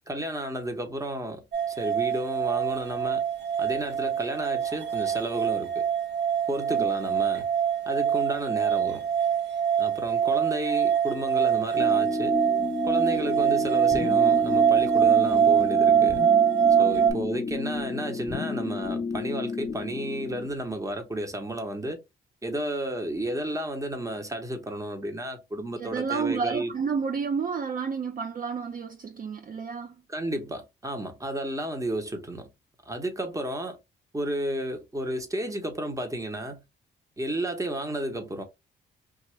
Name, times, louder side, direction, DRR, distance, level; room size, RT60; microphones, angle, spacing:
voice 1, 0.1-3.3 3.6-5.9 6.5-7.5 7.9-9.1 9.8-12.4 12.8-16.2 16.8-22.0 22.4-26.7 30.1-32.5 32.9-33.8 34.1-36.6 37.2-38.4, right 1 dB, 15° right, 0.9 m, -32 dB
sound 1, 1.5-17.1, right 8 dB, 55° right, 0.9 m, -24 dB
sound 2, 11.8-20.5, left 3 dB, 35° left, 0.7 m, -31 dB
voice 2, 25.8-30.0, right 5 dB, 40° right, 0.5 m, -31 dB
2.5 x 2.4 x 3.1 m
cardioid pair, 70°, 21 cm